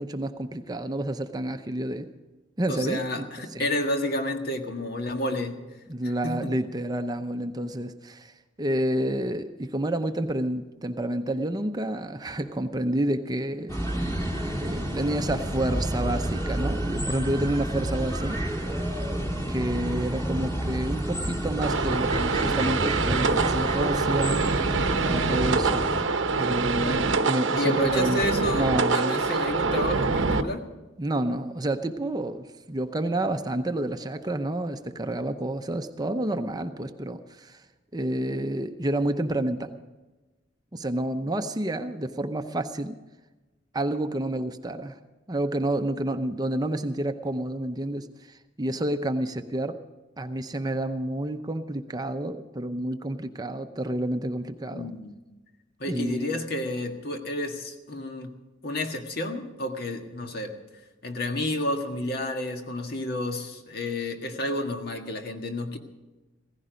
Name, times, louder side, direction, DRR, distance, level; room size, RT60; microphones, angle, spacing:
voice 1, 0.0-2.1 2.6-3.0 3.5-3.7 5.9-8.3 8.6-13.7 14.5-18.4 19.5-24.4 25.1-25.8 26.4-28.2 28.5-29.2 31.0-37.6 37.9-39.7 40.7-42.9 43.7-45.0 45.3-49.8 50.2-54.9 55.9-56.3, right 1 dB, 20° right, 7 dB, 0.7 m, -29 dB
voice 2, 2.7-5.6 6.0-6.5 26.8-27.1 27.5-30.6 54.7-55.1 55.8-58.3 58.6-60.6 61.0-65.8, left 1 dB, 55° left, 4 dB, 1.7 m, -30 dB
sound 1, 13.7-26.0, right 1 dB, 20° left, 2.4 m, -30 dB
sound 2, 21.6-30.4, right 4 dB, 80° right, 0.9 m, -25 dB
16.5 x 15.5 x 5.1 m, 1.1 s
head